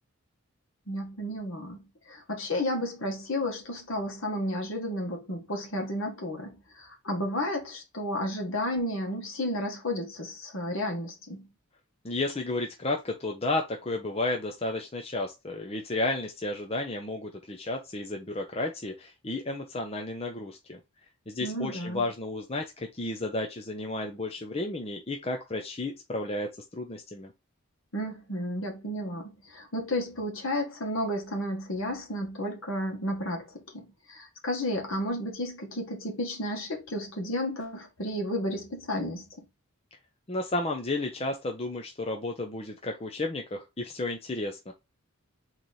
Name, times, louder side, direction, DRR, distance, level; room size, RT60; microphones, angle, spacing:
voice 1, 0.9-11.5 21.4-22.0 27.9-39.4, left 1 dB, 65° left, 1.6 m, -32 dB
voice 2, 12.0-20.8 21.3-27.3 40.3-44.7, left 2 dB, 25° left, 0.5 m, -32 dB
4.1 x 3.1 x 4.0 m
head